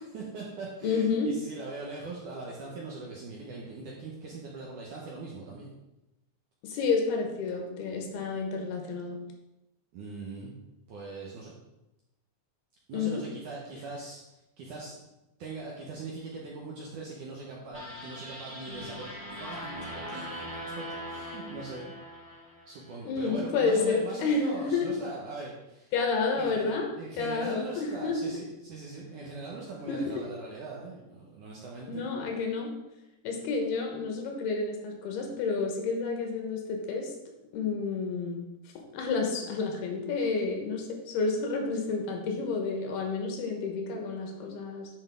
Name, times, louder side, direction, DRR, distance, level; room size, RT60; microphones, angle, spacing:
voice 1, 0.0-5.7 9.9-10.5 10.9-11.5 12.9-14.9 15.4-20.4 20.8-21.9 22.7-25.9 26.4-32.0, right 3 dB, 75° right, -3 dB, 1.9 m, -41 dB
voice 2, 0.8-1.3 6.6-9.2 12.9-13.2 23.0-24.9 25.9-26.9 27.1-28.4 29.9-30.2 31.9-32.7 33.2-37.1 37.5-38.4 38.9-44.9, left 4 dB, 75° left, 2 dB, 3.1 m, -30 dB
sound 1, 17.7-23.0, equal, 20° right, 2.6 m, -41 dB
9.8 x 5.5 x 3.6 m, 0.95 s
omnidirectional pair, 4.8 m